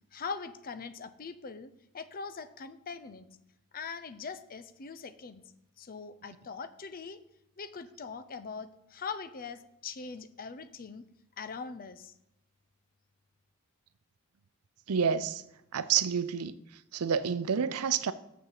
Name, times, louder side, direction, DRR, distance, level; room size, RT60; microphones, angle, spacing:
voice 1, 0.1-3.3 3.7-5.4 5.8-7.2 7.6-11.0 11.4-12.1, left 5 dB, 40° left, 0.6 m, -42 dB
voice 2, 14.9-15.4 15.7-16.6 16.9-18.1, right 7 dB, 85° right, 0.5 m, -28 dB
6.7 x 6.0 x 7.4 m
head